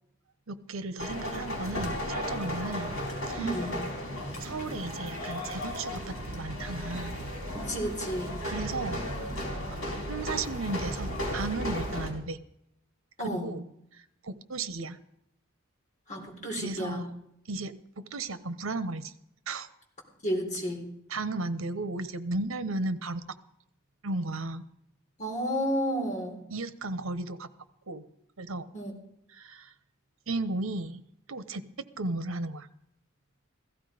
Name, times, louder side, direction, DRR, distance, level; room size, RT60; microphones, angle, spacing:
voice 1, 0.5-3.0 3.2-3.4 4.4-7.2 8.4-9.1 9.7-9.8 10.1-12.4 13.2-13.6 14.2-15.0 16.5-17.2 17.5-19.1 19.5-19.7 21.1-23.2 24.0-24.6 26.5-27.5 27.9-28.0 28.4-28.7 29.3-29.7 30.3-31.0 31.3-31.7 32.0-32.7, right 2 dB, 75° right, 12 dB, 1.0 m, -34 dB
sound 1, 1.0-12.1, equal, 70° left, 4.1 m, -35 dB
voice 2, 3.4-3.8 7.5-8.3 13.2-13.5 16.1-17.1 20.2-20.8 25.2-26.4 28.7-28.9, equal, 35° left, 0 dB, 3.9 m, -31 dB
16.0 x 14.5 x 5.1 m, 0.75 s
head